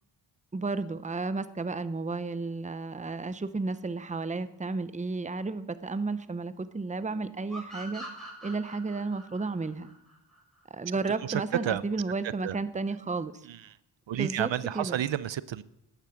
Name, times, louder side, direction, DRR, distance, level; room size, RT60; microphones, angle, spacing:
voice 1, 0.5-8.1 8.4-9.9 10.7-13.5 14.2-14.5 14.7-15.0, right 3 dB, 15° right, 13 dB, 0.7 m, -32 dB
sound 1, 7.5-10.9, right 1 dB, ahead, 6.3 m, -44 dB
voice 2, 11.2-11.8 12.4-12.6 13.5-13.8 14.1-15.6, right 11 dB, 70° right, 17 dB, 0.6 m, -31 dB
12.5 x 10.5 x 6.4 m, 0.84 s
wide cardioid pair, 80°, 47 cm